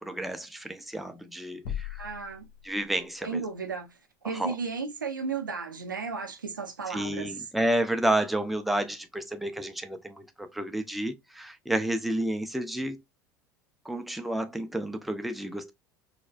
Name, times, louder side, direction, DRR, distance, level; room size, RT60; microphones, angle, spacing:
voice 1, 0.0-2.0 2.6-3.4 4.3-4.6 6.9-13.0 13.8-15.7, right 1 dB, ahead, 0.5 m, -30 dB
sound 1, 1.6-3.2, left 9 dB, 55° left, 0.9 m, -39 dB
voice 2, 2.0-2.5 3.2-7.3, right 5 dB, 80° right, 0.6 m, -34 dB
4.1 x 2.2 x 2.4 m
figure-of-eight pair, 70°, 10 cm